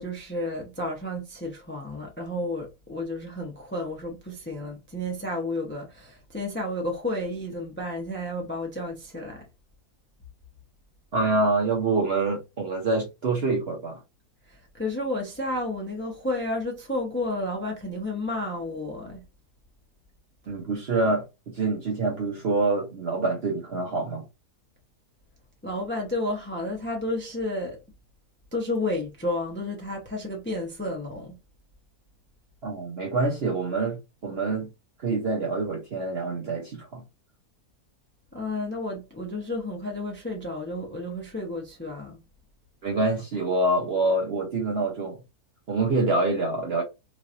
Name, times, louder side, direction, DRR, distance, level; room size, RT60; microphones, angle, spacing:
voice 1, 0.0-9.4 14.5-19.2 25.6-27.8 28.5-31.4 38.3-42.2, left 1 dB, 15° left, 0.5 m, -31 dB
voice 2, 11.1-14.0 20.5-21.2 21.5-24.2 32.6-34.7 35.0-37.0 42.8-45.2 45.7-46.8, right 3 dB, 55° right, 0.8 m, -26 dB
3.1 x 2.6 x 2.5 m
omnidirectional pair, 1.7 m